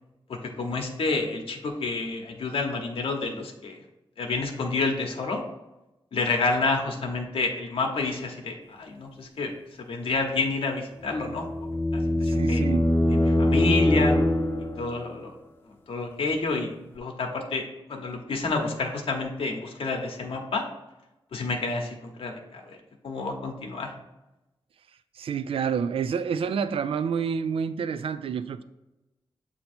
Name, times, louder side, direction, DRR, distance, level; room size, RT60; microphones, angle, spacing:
voice 1, 0.3-3.8 4.2-5.4 6.1-9.5 9.8-11.4 11.9-12.6 13.1-14.2 14.8-15.3 15.9-17.6 17.9-20.6 21.3-22.8 23.0-23.9, left 3 dB, 80° left, 0.9 m, -29 dB
sound 1, 11.0-15.0, left 1 dB, 25° left, 0.6 m, -23 dB
voice 2, 12.3-12.9 25.2-28.6, right 6 dB, 80° right, 0.3 m, -28 dB
7.7 x 2.8 x 4.3 m
wide cardioid pair, 135°, 9 cm